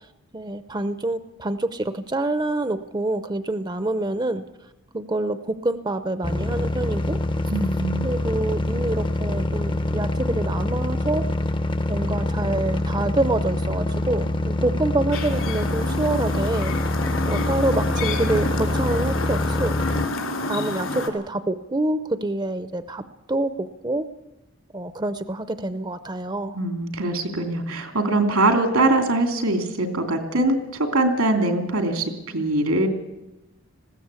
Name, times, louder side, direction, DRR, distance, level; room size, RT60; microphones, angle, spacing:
voice 1, 0.3-4.4 4.9-7.2 8.0-11.3 11.9-16.7 17.3-19.8 20.5-23.0 23.3-24.1 24.7-26.6, right 2 dB, 20° right, 11 dB, 0.6 m, -26 dB
sound 1, 6.2-20.1, left 1 dB, 20° left, 0.6 m, -25 dB
voice 2, 7.5-8.1 26.5-32.9, right 2 dB, 85° right, 6 dB, 2.9 m, -22 dB
Chirp tweet, 15.1-21.1, left 2 dB, 75° left, 3.1 m, -29 dB
20.0 x 16.0 x 8.3 m, 0.96 s
head